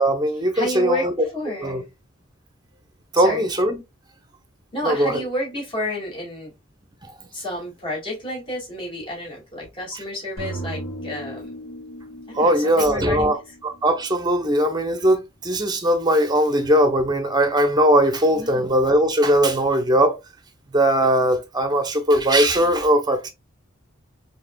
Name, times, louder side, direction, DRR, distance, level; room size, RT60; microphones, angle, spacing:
voice 1, 0.0-1.3 1.6-1.8 3.1-3.8 4.8-5.2 7.0-7.1 12.3-20.2 20.7-23.3, right 1 dB, 20° right, 0.7 m, -19 dB
voice 2, 0.5-1.1 1.3-1.9 3.1-3.5 4.7-6.5 7.3-11.5 12.3-13.3 18.3-18.7, left 1 dB, 25° left, 2.0 m, -30 dB
sound 1, 10.4-14.5, right 1 dB, 80° left, 2.2 m, -37 dB
4.7 x 3.4 x 2.2 m
head